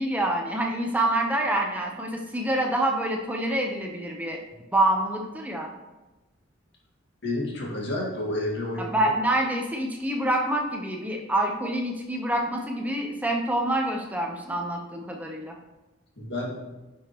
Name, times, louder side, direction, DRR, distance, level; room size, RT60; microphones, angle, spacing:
voice 1, 0.0-4.4 4.7-5.7 8.8-15.5, right 1 dB, 10° right, 1 dB, 0.9 m, -26 dB
voice 2, 7.2-8.9 16.2-16.5, left 1 dB, 60° left, -3 dB, 2.1 m, -30 dB
10.0 x 6.1 x 3.1 m, 1.1 s
head